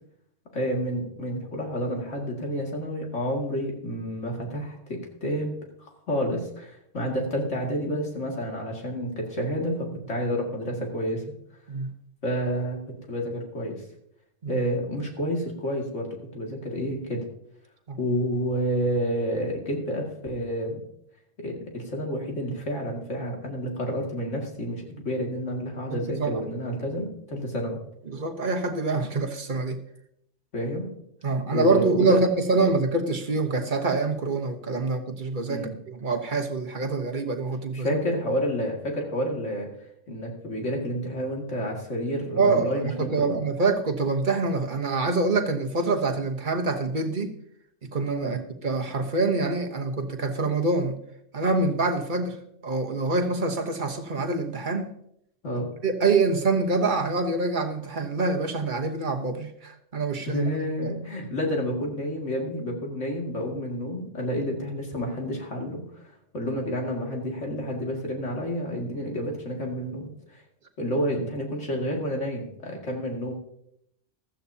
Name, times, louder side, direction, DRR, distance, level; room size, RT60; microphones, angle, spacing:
voice 1, 0.5-5.5 5.8-11.2 12.2-12.8 13.1-13.8 14.5-17.2 18.0-20.8 21.4-27.8 30.5-30.9 31.5-32.2 35.5-35.7 37.7-39.7 40.1-43.4 48.2-48.4 55.4-55.7 60.3-66.0 66.3-70.4 70.8-73.3, equal, 70° left, 0 dB, 2.6 m, -29 dB
voice 2, 25.9-26.4 28.1-29.8 31.2-38.0 42.4-42.7 43.0-47.3 47.9-50.9 51.3-54.9 55.8-60.4 60.8-60.9, right 3 dB, 40° right, 4 dB, 1.2 m, -25 dB
15.5 x 13.0 x 2.8 m, 0.74 s
omnidirectional pair, 1.3 m